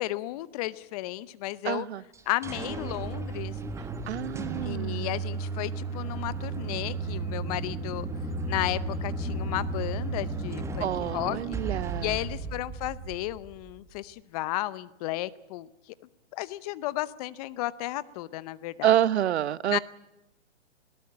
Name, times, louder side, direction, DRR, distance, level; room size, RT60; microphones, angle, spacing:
voice 1, 0.0-1.9 2.3-3.5 4.6-8.1 8.5-11.6 12.0-15.7 16.3-19.0 19.7-19.8, left 17 dB, 30° left, 0.8 m, -33 dB
voice 2, 1.6-2.0 4.1-5.2 10.8-12.2 18.8-19.8, right 11 dB, 65° right, 0.9 m, -27 dB
sound 1, 2.1-13.8, right 3 dB, 10° right, 1.4 m, -34 dB
21.5 x 18.0 x 8.8 m
hypercardioid pair, 135°, 36 cm